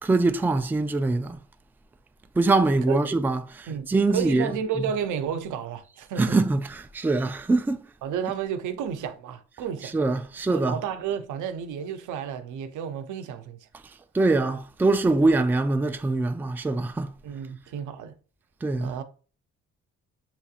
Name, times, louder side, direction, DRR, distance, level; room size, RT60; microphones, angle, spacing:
voice 1, 0.0-1.4 2.4-4.5 4.8-4.9 6.2-7.8 9.8-10.8 14.1-17.1 18.6-19.0, right 3 dB, 5° right, 0.3 m, -23 dB
voice 2, 3.7-6.4 8.0-10.0 10.5-13.7 17.2-18.1 18.8-19.0, right 8 dB, 80° right, 0.6 m, -32 dB
7.1 x 2.7 x 2.4 m
cardioid pair, 90°, 30 cm